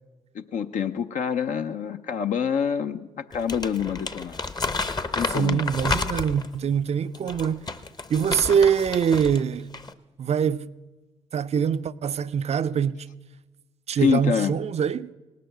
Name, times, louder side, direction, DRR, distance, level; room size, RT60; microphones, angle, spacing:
voice 1, 0.3-3.0 3.3-4.4 5.1-5.7 13.9-14.6, left 7 dB, 60° left, 0.6 m, -26 dB
Crumpling crinkling, 3.3-6.5 7.1-9.4 9.7-9.9, left 3 dB, 30° left, 0.8 m, -31 dB
voice 2, 5.3-7.7 8.1-9.7 10.2-10.7 11.3-13.1 13.9-15.1, right 7 dB, 50° right, 0.5 m, -24 dB
18.0 x 6.7 x 6.6 m
hypercardioid pair, 45°, 14 cm